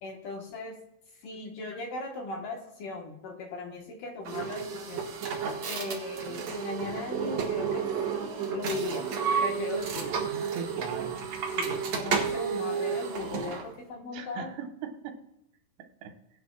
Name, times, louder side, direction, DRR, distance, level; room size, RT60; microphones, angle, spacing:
voice 1, 0.0-0.8 1.2-5.0 5.7-7.9 8.5-9.1 9.4-10.2 11.5-14.5, left 3 dB, 60° left, 1 dB, 2.6 m, -38 dB
sound 1, 4.2-13.7, right 6 dB, 55° right, 2.0 m, -31 dB
voice 2, 10.5-11.2 14.1-15.2 16.0-16.1, right 7 dB, 80° right, 3 dB, 3.5 m, -39 dB
19.5 x 10.0 x 2.4 m, 0.79 s
omnidirectional pair, 5.0 m